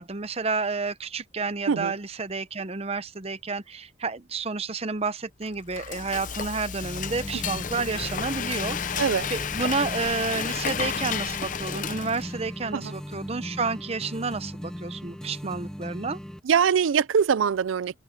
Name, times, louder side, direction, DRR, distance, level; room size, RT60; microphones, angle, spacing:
voice 1, 0.0-16.2, right 4 dB, 30° right, 0.7 m, -30 dB
Frying (food), 5.4-12.5, left 7 dB, 40° left, 0.6 m, -32 dB
sound 1, 6.8-16.4, equal, 5° left, 1.7 m, -38 dB
voice 2, 16.4-18.0, right 7 dB, 80° right, 0.4 m, -23 dB
open air
head